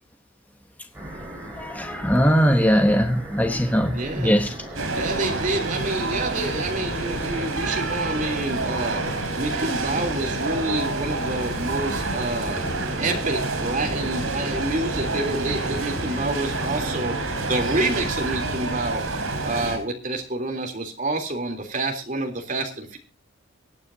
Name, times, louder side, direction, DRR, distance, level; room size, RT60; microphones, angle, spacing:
sound 1, 0.9-18.1, right 1 dB, 10° right, 7.4 m, -38 dB
voice 1, 1.6-4.5, equal, 10° left, 1.0 m, -20 dB
voice 2, 3.9-4.4 4.9-9.0 9.4-12.6 13.0-17.1 17.5-19.0 19.4-23.0, right 2 dB, 40° right, 3.3 m, -28 dB
sound 2, 4.7-19.8, right 2 dB, 85° right, 5.1 m, -28 dB
24.0 x 9.5 x 2.8 m
head